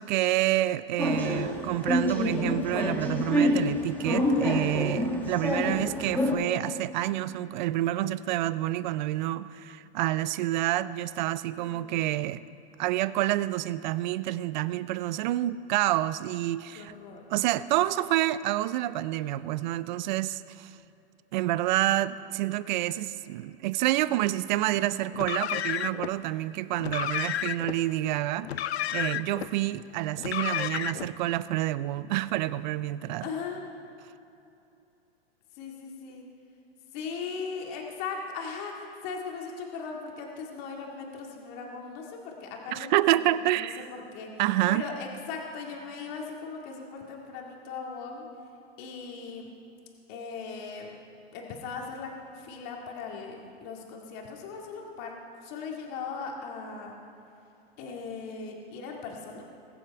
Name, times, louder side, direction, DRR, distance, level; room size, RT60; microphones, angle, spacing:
voice 1, 0.0-12.4 12.8-16.9 17.3-20.7 21.3-28.5 28.9-33.3 42.7-43.8 44.4-44.8, right 15 dB, 50° right, 17 dB, 0.5 m, -28 dB
sound 1, 1.0-6.3, left 1 dB, 5° left, 1.6 m, -27 dB
voice 2, 11.6-12.1 16.8-17.3 33.2-33.6 35.6-36.2 36.9-43.0 43.6-43.8 44.1-44.3 44.7-48.3 48.8-49.5 50.1-50.9 51.3-55.1 55.4-56.9 57.8-59.5, left 5 dB, 45° left, 0 dB, 2.1 m, -38 dB
Car, 25.1-26.1 26.8-27.8 28.4-29.5 30.2-31.1, left 11 dB, 90° left, 0.5 m, -31 dB
21.0 x 7.6 x 4.6 m, 2.7 s
hypercardioid pair, 130°, 31 cm